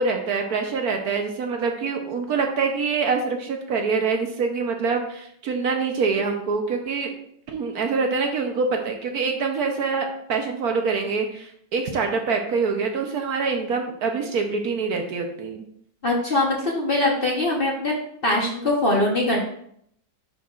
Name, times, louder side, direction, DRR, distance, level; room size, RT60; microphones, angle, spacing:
voice 1, 0.0-7.1 7.5-15.6, right 4 dB, 65° right, 3 dB, 1.1 m, -25 dB
voice 2, 16.0-18.0 18.2-19.4, left 2 dB, 40° left, -2 dB, 1.0 m, -22 dB
10.0 x 4.6 x 2.4 m, 0.68 s
omnidirectional pair, 1.9 m